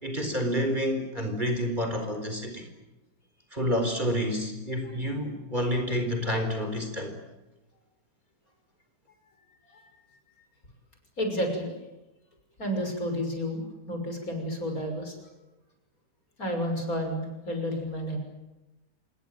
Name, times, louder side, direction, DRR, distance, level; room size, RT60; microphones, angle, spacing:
voice 1, 0.0-2.6 3.5-7.1, equal, 25° right, 5 dB, 4.4 m, -29 dB
voice 2, 11.2-11.7 12.6-15.2 16.4-18.2, equal, 55° left, 4 dB, 6.6 m, -31 dB
26.5 x 21.5 x 9.2 m, 1.0 s
omnidirectional pair, 1.8 m